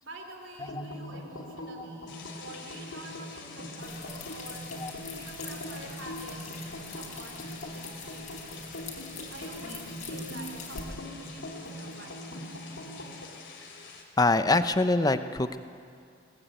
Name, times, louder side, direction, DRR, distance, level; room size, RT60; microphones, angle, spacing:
voice 1, 0.0-4.7 5.1-6.6 6.9-8.7 9.3-12.9, right 2 dB, 75° right, 4 dB, 3.3 m, -48 dB
sound 1, 0.6-13.3, equal, 85° left, 2.8 m, -42 dB
sound 2, 2.1-14.0, left 5 dB, 70° left, 3.3 m, -48 dB
sound 3, 3.8-10.8, left 5 dB, 40° left, 4.0 m, -45 dB
voice 2, 14.2-15.6, left 2 dB, 20° left, 11 dB, 0.8 m, -24 dB
22.0 x 18.5 x 9.1 m, 2.4 s
head